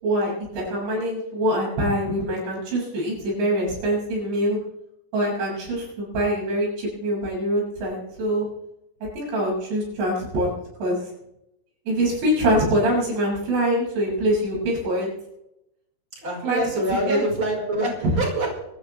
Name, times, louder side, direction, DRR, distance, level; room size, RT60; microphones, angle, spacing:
voice 1, 0.0-4.6 5.1-8.5 9.2-10.5 10.8-11.1 11.9-15.1 16.4-16.6 17.1-17.2 18.0-18.2, right 1 dB, 70° right, -3 dB, 9.0 m, -24 dB
voice 2, 16.2-18.6, right 1 dB, 25° right, -1 dB, 5.8 m, -25 dB
26.0 x 13.5 x 3.5 m, 0.84 s
omnidirectional pair, 5.4 m